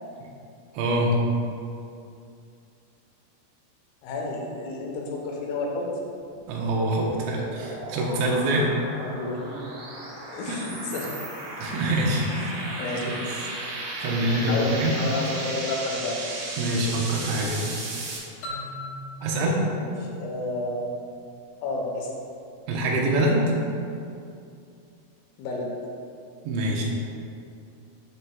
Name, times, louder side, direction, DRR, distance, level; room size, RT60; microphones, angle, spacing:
voice 1, 0.7-1.1 6.5-8.7 10.5-10.6 11.6-13.1 14.0-15.0 16.6-17.7 19.2-19.6 22.7-23.4 26.4-26.8, right 1 dB, 75° right, -2 dB, 3.0 m, -25 dB
voice 2, 4.0-5.9 9.0-9.6 10.3-11.2 12.3-13.3 14.1-16.2 19.7-20.9 21.6-22.1 25.4-25.7, left 2 dB, 80° left, -1 dB, 3.5 m, -31 dB
sound 1, 6.2-18.2, right 2 dB, 90° right, 4.2 m, -35 dB
sound 2, 18.4-21.1, left 1 dB, 65° left, 2.8 m, -39 dB
8.5 x 7.7 x 2.2 m, 2.5 s
omnidirectional pair, 6.0 m